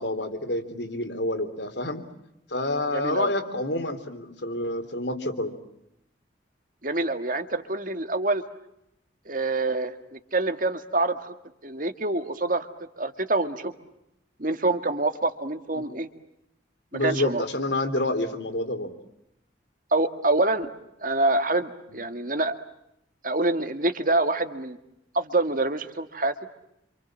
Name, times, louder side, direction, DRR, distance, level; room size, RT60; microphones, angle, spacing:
voice 1, 0.0-2.0 2.5-5.5 15.8-15.9 16.9-18.9 21.9-22.0, left 1 dB, 70° left, 8 dB, 3.4 m, -28 dB
voice 2, 2.9-3.3 6.8-8.4 9.3-11.3 11.6-12.7 13.0-13.7 14.4-16.1 17.0-17.4 19.9-20.7 21.0-22.5 23.2-24.8 25.1-26.3, right 2 dB, 45° right, 8 dB, 2.0 m, -26 dB
28.0 x 27.0 x 7.5 m, 0.82 s
head